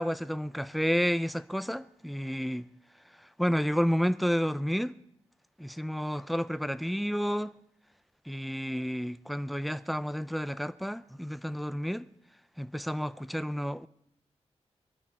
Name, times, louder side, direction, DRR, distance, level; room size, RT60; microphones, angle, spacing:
voice 1, 0.0-2.7 3.4-5.0 5.6-7.5 8.3-12.1 12.6-13.9, equal, ahead, 0.5 m, -30 dB
24.0 x 12.0 x 4.2 m
wide cardioid pair, 120°, 12 cm